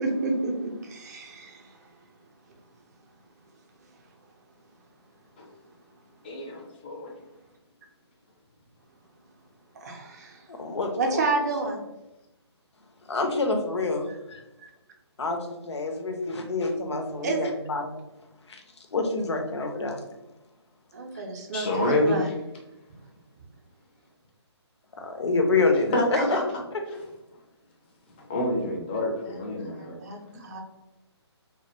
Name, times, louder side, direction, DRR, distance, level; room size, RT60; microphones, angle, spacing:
voice 1, 0.0-1.8 9.7-10.4 11.0-11.8 14.6-14.7 17.2-17.5 20.9-22.3 30.0-30.6, right 3 dB, 35° right, 2 dB, 0.4 m, -30 dB
voice 2, 6.2-7.1 21.5-22.2 25.9-26.4 28.3-30.0, left 1 dB, 20° left, 0 dB, 0.4 m, -27 dB
voice 3, 10.5-11.2 13.1-14.4 15.2-18.0 18.5-18.6 18.9-20.0 25.0-26.2, left 3 dB, 70° left, 3 dB, 0.5 m, -27 dB
2.1 x 2.1 x 2.9 m, 0.95 s
figure-of-eight pair, 150°, 15 cm